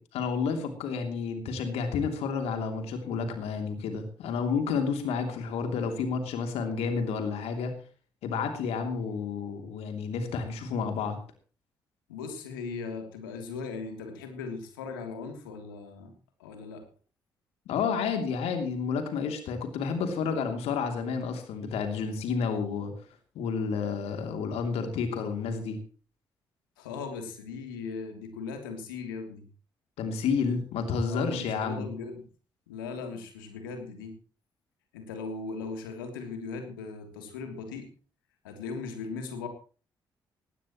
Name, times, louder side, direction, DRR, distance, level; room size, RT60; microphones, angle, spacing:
voice 1, 0.0-7.8 8.2-11.2 17.7-22.9 23.3-25.8 30.0-31.9, left 5 dB, 70° left, 5 dB, 3.0 m, -30 dB
voice 2, 12.1-16.1 16.4-16.8 26.8-29.4 31.1-32.2 32.7-34.1 34.9-37.9 38.4-39.5, left 4 dB, 85° left, 5 dB, 3.1 m, -38 dB
18.5 x 16.5 x 3.1 m, 0.38 s
hypercardioid pair, 40°, 11 cm